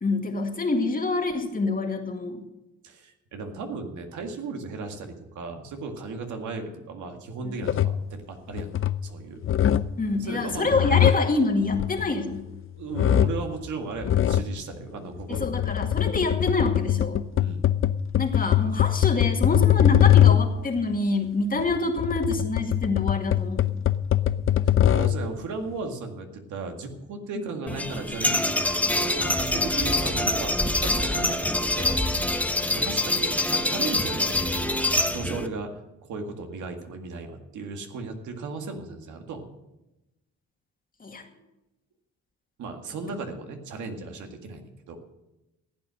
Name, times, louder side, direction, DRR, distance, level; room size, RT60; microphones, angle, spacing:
voice 1, 0.0-2.4 7.4-7.5 10.0-12.5 15.3-17.2 18.2-23.7 41.0-41.2 43.0-43.2, left 3 dB, 30° left, 3 dB, 2.1 m, -26 dB
voice 2, 2.8-9.4 10.2-10.8 12.7-15.7 17.3-17.6 24.7-32.0 32.7-35.7 36.0-39.6 42.6-45.0, right 3 dB, 75° right, 4 dB, 2.0 m, -36 dB
sound 1, 7.6-8.1 8.5-9.1 9.4-10.0 10.5-12.6 12.9-13.5 14.0-14.6 15.2-20.6 21.6-25.3, left 11 dB, 45° left, 0.5 m, -22 dB
sound 2, 27.7-35.5, left 1 dB, 5° left, 0.8 m, -25 dB
14.5 x 8.6 x 6.4 m, 0.96 s
cardioid pair, 90°, 30 cm